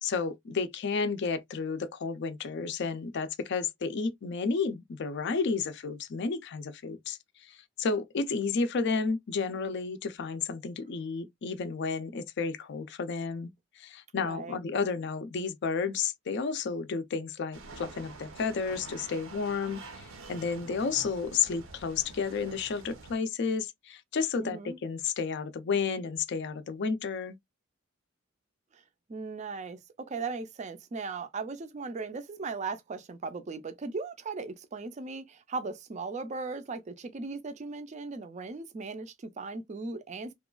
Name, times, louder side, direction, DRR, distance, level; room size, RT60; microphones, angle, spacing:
voice 1, 0.0-13.5 13.8-27.4, left 5 dB, 55° left, 0.4 m, -32 dB
voice 2, 14.2-14.6 24.4-24.8 28.7-28.8 29.1-40.3, right 4 dB, 35° right, 0.4 m, -38 dB
sound 1, 17.5-23.1, right 3 dB, 80° right, 0.7 m, -47 dB
2.9 x 2.3 x 2.2 m
head